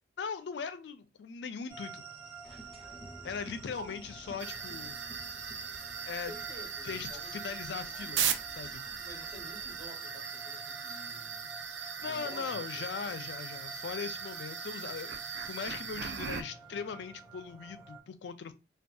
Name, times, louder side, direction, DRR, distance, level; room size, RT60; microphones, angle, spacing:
voice 1, 0.2-2.0 3.2-5.0 6.0-6.3 6.8-8.8 11.8-18.5, left 6 dB, 70° left, 0.4 m, -40 dB
sound 1, 1.7-18.0, right 5 dB, 30° right, 0.9 m, -50 dB
sound 2, 2.4-9.9, equal, ahead, 0.5 m, -54 dB
sound 3, 4.4-16.4, right 7 dB, 80° right, 0.4 m, -38 dB
voice 2, 6.2-7.9 8.8-11.5 12.0-13.3, equal, 50° right, 1.2 m, -50 dB
2.6 x 2.3 x 2.2 m
head